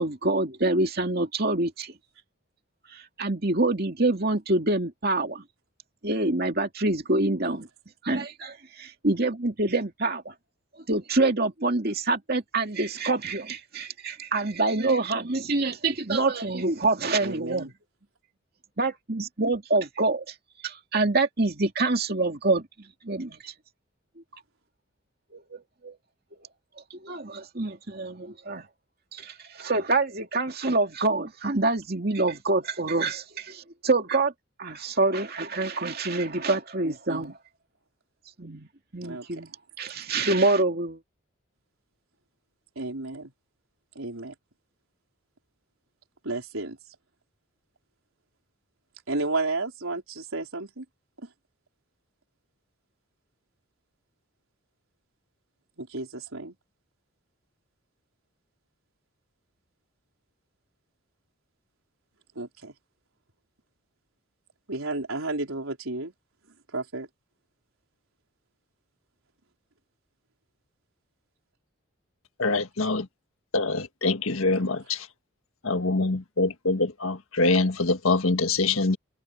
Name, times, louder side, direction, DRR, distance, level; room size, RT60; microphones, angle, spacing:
voice 1, 0.0-1.9 2.9-5.4 6.0-7.7 8.0-10.3 10.9-17.7 18.8-20.3 20.6-22.6 23.0-23.5 25.3-25.9 27.0-28.7 29.1-34.3 34.6-37.3 38.4-39.5 39.8-41.0, right 2 dB, 45° right, 2.6 m, -26 dB
voice 2, 17.2-17.7 36.8-37.3 39.0-39.3 42.8-43.3 43.9-44.3 46.2-46.8 49.1-50.8 55.8-56.5 62.4-62.7 64.7-66.1 66.7-67.1 74.4-74.7, right 2 dB, 80° right, 4.3 m, -32 dB
voice 3, 72.4-73.1 73.5-75.0 75.6-79.0, left 3 dB, 80° left, 1.7 m, -24 dB
head